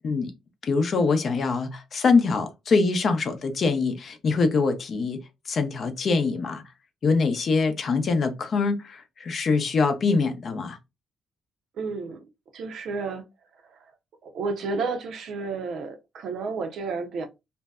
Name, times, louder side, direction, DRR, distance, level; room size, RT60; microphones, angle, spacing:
voice 1, 0.6-5.2 5.5-6.6 7.0-10.8, left 4 dB, 50° left, 0.6 m, -24 dB
voice 2, 11.8-12.2 12.5-13.2 14.2-17.3, right 4 dB, 70° right, 0.5 m, -31 dB
2.5 x 2.1 x 2.2 m
cardioid pair, 90°, 0 cm